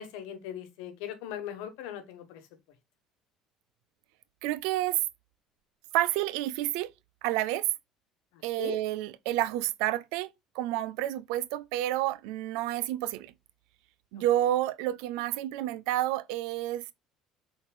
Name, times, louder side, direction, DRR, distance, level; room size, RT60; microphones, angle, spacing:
voice 1, 0.0-2.5 8.3-8.8 14.1-14.2, left 10 dB, 90° left, 1.2 m, -40 dB
voice 2, 4.4-5.0 5.9-6.9 7.2-7.7 8.4-13.3 14.1-16.9, right 14 dB, 85° right, 0.4 m, -29 dB
5.7 x 4.0 x 2.3 m
cardioid pair, 120°, 0 cm